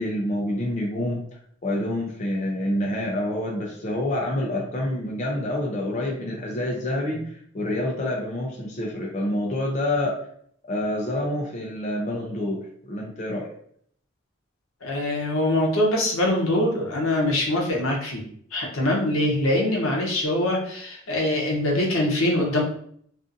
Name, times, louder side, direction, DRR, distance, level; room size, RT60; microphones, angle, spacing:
voice 1, 0.0-10.2 10.7-13.5, left 1 dB, 35° left, -2 dB, 0.4 m, -27 dB
voice 2, 14.8-18.2 18.5-22.6, left 1 dB, 80° left, -1 dB, 0.7 m, -23 dB
2.5 x 2.4 x 2.5 m, 0.63 s
head